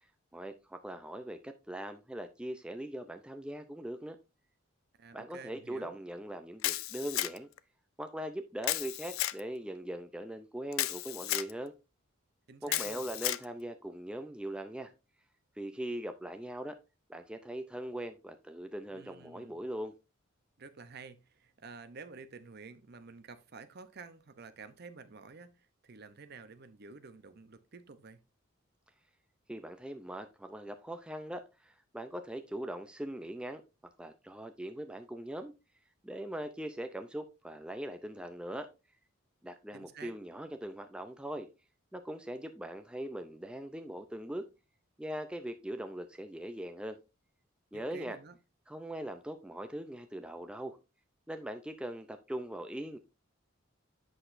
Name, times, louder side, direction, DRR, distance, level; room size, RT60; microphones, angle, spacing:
voice 1, 0.3-4.2 5.1-7.5 8.0-11.7 12.6-14.9 15.6-16.7 17.1-19.9 29.5-33.6 34.0-35.5 36.0-38.7 39.4-41.5 41.9-44.5 45.0-47.0 47.7-48.2 48.7-50.8 51.3-53.0, right 1 dB, 5° right, 0.4 m, -41 dB
voice 2, 5.0-6.0 12.5-13.1 18.9-19.6 20.6-28.2 39.7-40.1 47.7-48.4, right 4 dB, 50° right, 0.6 m, -50 dB
Camera, 6.6-7.6 8.6-9.4 10.7-11.5 12.7-13.4, left 15 dB, 80° left, 0.4 m, -33 dB
7.8 x 6.3 x 2.5 m
head